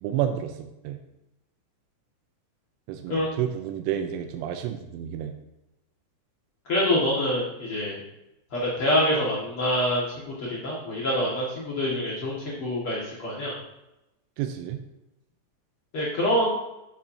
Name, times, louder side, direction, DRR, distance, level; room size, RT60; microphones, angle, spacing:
voice 1, 0.0-1.0 2.9-5.3 14.4-14.8, right 10 dB, 85° right, 6 dB, 3.0 m, -30 dB
voice 2, 6.7-8.0 8.5-13.5 15.9-16.5, equal, 70° left, -7 dB, 1.3 m, -26 dB
10.5 x 7.2 x 2.8 m, 0.92 s
omnidirectional pair, 5.9 m